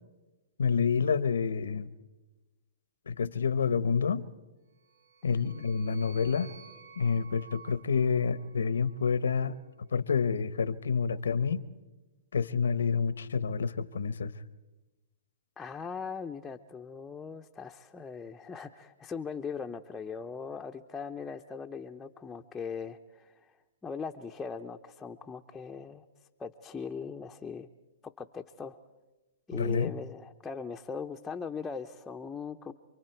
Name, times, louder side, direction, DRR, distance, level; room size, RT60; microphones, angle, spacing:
voice 1, 0.6-1.9 3.1-4.3 5.2-6.5 7.0-9.6 9.9-11.6 12.3-14.3 29.5-29.9, left 5 dB, 90° left, 16 dB, 1.0 m, -28 dB
sound 1, 4.8-9.1, right 5 dB, 65° right, 3.5 m, -53 dB
voice 2, 15.6-23.5 23.8-26.0 26.4-27.7 28.2-28.8 29.5-32.7, left 5 dB, 10° left, 3 dB, 0.7 m, -40 dB
28.0 x 23.0 x 4.5 m, 1.1 s
hypercardioid pair, 140°, 0 cm